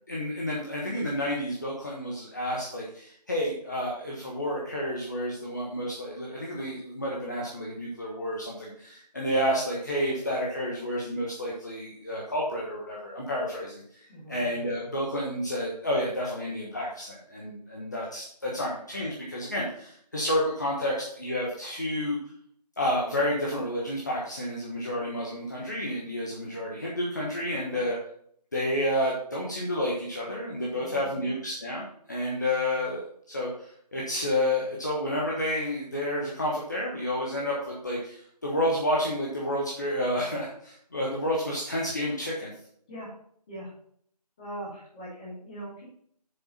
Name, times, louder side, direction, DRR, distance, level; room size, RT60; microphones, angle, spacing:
voice 1, 0.1-22.2 22.8-27.9 28.5-42.5, left 1 dB, 25° left, -4 dB, 1.2 m, -30 dB
voice 2, 14.1-14.4 18.6-18.7 26.4-26.5 27.6-27.8 30.7-31.4 42.9-43.1 43.5-43.7 44.4-45.8, right 1 dB, 10° left, -7 dB, 1.9 m, -41 dB
7.6 x 7.1 x 4.2 m, 0.64 s
figure-of-eight pair, 170°, 21 cm